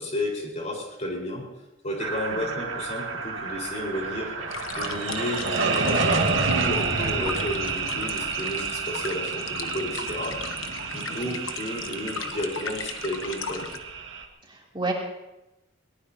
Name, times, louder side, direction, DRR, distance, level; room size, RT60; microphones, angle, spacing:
voice 1, 0.0-1.5 1.8-4.3 4.7-10.4 10.9-13.7, left 1 dB, 35° left, -1 dB, 4.7 m, -32 dB
sound 1, 2.0-14.2, right 6 dB, 65° right, 1.9 m, -32 dB
sound 2, 3.7-12.1, right 2 dB, 85° right, 2.4 m, -30 dB
sound 3, 4.5-13.8, left 6 dB, 90° left, 1.1 m, -37 dB
voice 2, 14.5-14.9, right 3 dB, 25° right, -3 dB, 3.3 m, -32 dB
21.5 x 19.5 x 2.9 m, 0.96 s
head